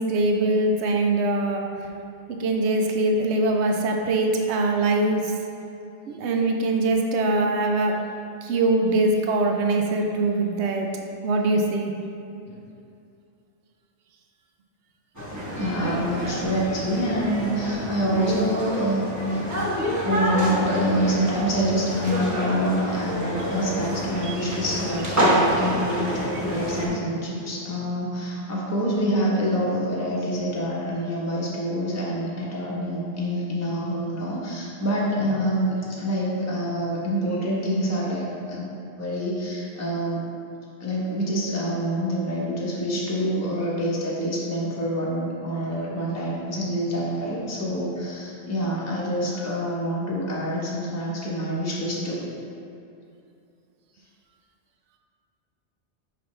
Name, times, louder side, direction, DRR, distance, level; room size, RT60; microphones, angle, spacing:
voice 1, 0.0-1.9 2.3-5.3 6.1-7.9 8.4-10.9 11.2-11.9, right 2 dB, 75° right, 2 dB, 0.9 m, -22 dB
sound 1, 15.1-26.9, equal, 15° right, 1.0 m, -27 dB
voice 2, 15.3-19.4 20.0-38.7 39.0-40.3 40.8-52.3, equal, 15° left, -5 dB, 0.9 m, -26 dB
5.9 x 5.3 x 3.2 m, 2.6 s
omnidirectional pair, 1.2 m